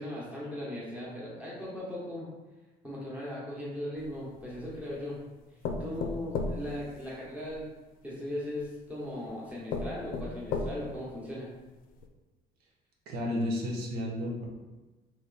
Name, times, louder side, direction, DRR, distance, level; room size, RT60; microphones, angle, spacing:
voice 1, 0.0-2.3 2.8-5.2 5.8-7.7 8.0-11.5, left 1 dB, 10° right, -6 dB, 1.1 m, -38 dB
sound 1, 4.0-4.9 5.6-7.6 8.6-8.7 9.3-9.4 9.7-11.1 11.5-11.6 12.0-12.1, left 4 dB, 65° left, 0.5 m, -35 dB
voice 2, 13.1-14.5, left 1 dB, 80° right, -2 dB, 1.0 m, -32 dB
3.5 x 3.1 x 4.0 m, 1.2 s
cardioid pair, 155°, 16 cm